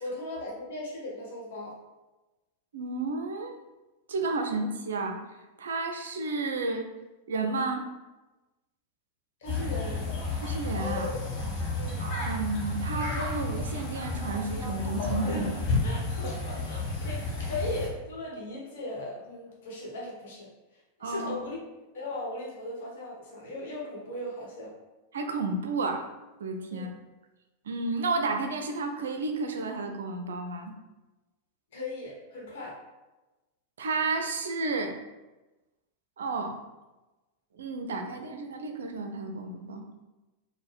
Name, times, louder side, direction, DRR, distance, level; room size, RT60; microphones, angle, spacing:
voice 1, 0.0-1.7 9.4-10.0 11.8-12.0 15.2-15.6 15.8-20.5 21.0-21.6 21.9-24.7 26.7-26.9 31.7-32.8, left 2 dB, 55° left, -3 dB, 1.1 m, -37 dB
voice 2, 2.7-3.6 4.1-5.2 5.6-6.9 7.3-7.9 10.4-11.2 12.0-15.4 15.7-15.8 21.0-21.4 25.1-26.1 26.4-26.9 27.7-30.7 33.8-35.0 36.2-36.6 37.6-39.9, right 3 dB, 65° right, 5 dB, 0.4 m, -32 dB
sound 1, 9.4-17.9, left 2 dB, 40° left, 1.1 m, -31 dB
4.3 x 2.2 x 3.3 m, 1.1 s
figure-of-eight pair, 90°, 0 cm